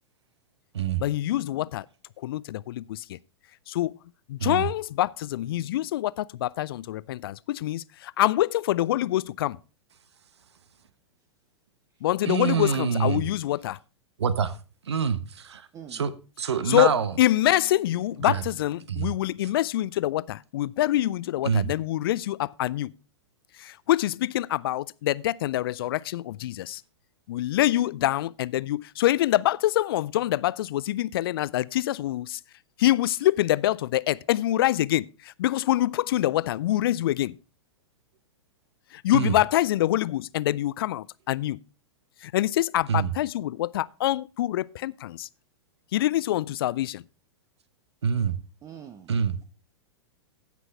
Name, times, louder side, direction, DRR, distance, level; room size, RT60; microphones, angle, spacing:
voice 1, 1.0-1.9 2.2-3.2 3.7-4.0 4.3-9.6 12.0-13.8 16.7-22.9 23.5-26.8 27.3-32.4 32.8-37.4 38.9-41.6 42.2-45.3 45.9-47.0, left 14 dB, 55° left, 0.4 m, -25 dB
voice 2, 12.2-13.2 14.2-14.6 14.8-17.1 18.2-18.4 18.9-19.1 21.4-21.7 39.1-39.4 42.9-43.1 48.0-48.4 49.1-49.4, right 7 dB, 70° right, 0.9 m, -26 dB
voice 3, 15.7-16.1 23.6-23.8 48.6-49.1, right 9 dB, 20° right, 0.7 m, -45 dB
16.5 x 6.0 x 3.2 m
figure-of-eight pair, 105°, 15 cm